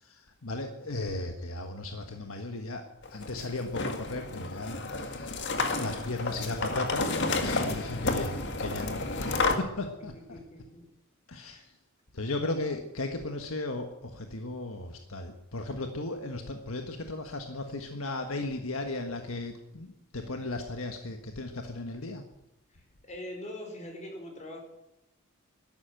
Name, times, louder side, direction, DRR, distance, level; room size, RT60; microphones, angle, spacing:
voice 1, 0.0-2.8 3.1-5.5 5.8-10.4 11.3-11.6 12.1-22.2, left 2 dB, 70° left, 5 dB, 1.5 m, -36 dB
sound 1, 3.0-9.6, left 3 dB, 55° left, 2.0 m, -31 dB
voice 2, 10.1-10.8 11.5-11.6 22.7-24.6, left 1 dB, 35° left, 1 dB, 5.2 m, -43 dB
13.0 x 12.0 x 9.0 m, 0.91 s
head